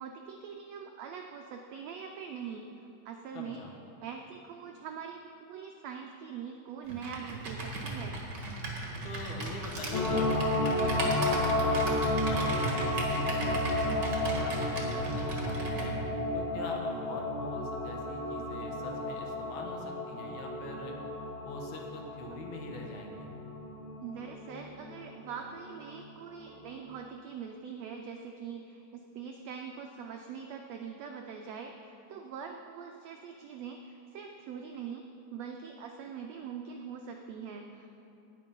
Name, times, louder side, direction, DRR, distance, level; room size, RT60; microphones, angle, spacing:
voice 1, 0.0-2.7 3.0-3.6 4.0-8.1 24.0-35.0 35.3-37.9, right 6 dB, 90° right, 3 dB, 1.4 m, -43 dB
voice 2, 3.3-3.7 9.0-11.8 12.3-16.0 16.3-20.9 21.4-23.3, left 2 dB, 65° left, 0 dB, 2.5 m, -43 dB
Computer keyboard, 6.9-15.9, right 2 dB, 40° right, 1.8 m, -36 dB
sound 1, 9.9-25.6 26.0-26.1, left 1 dB, 45° left, 2.1 m, -32 dB
18.5 x 6.6 x 5.4 m, 2.7 s
omnidirectional pair, 3.8 m